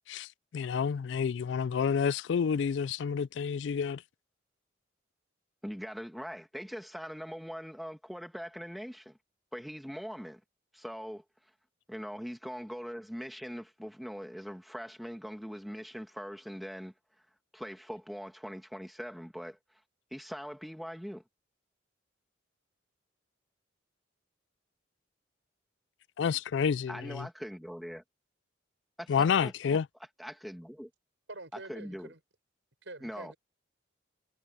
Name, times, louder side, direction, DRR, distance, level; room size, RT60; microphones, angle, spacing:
voice 1, 0.5-4.0 26.2-26.9 29.1-29.8, left 6 dB, 70° left, 0.3 m, -29 dB
voice 2, 5.6-9.2 9.5-10.4 10.7-11.2 11.9-16.9 17.5-19.6 20.1-21.2 26.9-28.0 29.0-29.8 30.2-30.9 31.7-32.1 33.0-33.3, equal, ahead, 1.6 m, -42 dB
voice 3, 31.3-32.2 32.8-33.4, right 2 dB, 70° right, 6.1 m, -46 dB
head